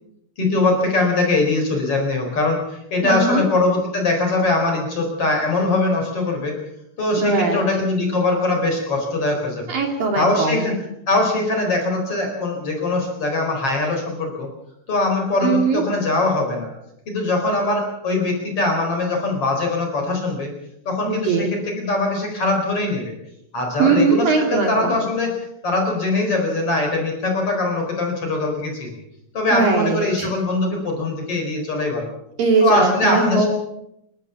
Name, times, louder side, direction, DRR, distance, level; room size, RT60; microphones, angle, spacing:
voice 1, 0.4-6.5 7.0-9.6 10.1-10.7 11.1-14.5 14.9-16.7 17.1-20.5 20.8-23.1 23.5-25.3 25.6-29.0 29.3-32.1 32.6-33.5, left 2 dB, 30° left, 2 dB, 4.9 m, -22 dB
voice 2, 3.0-3.4 7.2-7.6 9.7-10.8 15.4-15.8 21.0-21.5 23.8-25.0 29.5-30.3 32.4-33.5, right 4 dB, 55° right, 2 dB, 4.1 m, -20 dB
29.0 x 13.5 x 7.1 m, 0.82 s
omnidirectional pair, 5.3 m